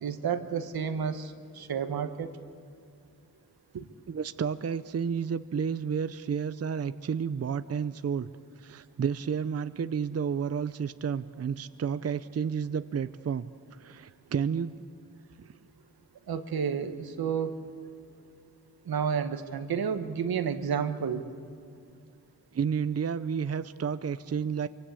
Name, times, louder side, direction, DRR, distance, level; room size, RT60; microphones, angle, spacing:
voice 1, 0.0-2.3 3.7-3.8 16.3-17.5 18.9-21.3, right 7 dB, 80° right, 8 dB, 1.6 m, -31 dB
voice 2, 4.1-8.3 8.6-13.5 13.8-14.9 22.5-24.7, right 7 dB, 45° right, 13 dB, 0.6 m, -31 dB
25.5 x 24.5 x 8.5 m, 2.4 s
wide cardioid pair, 95°, 36 cm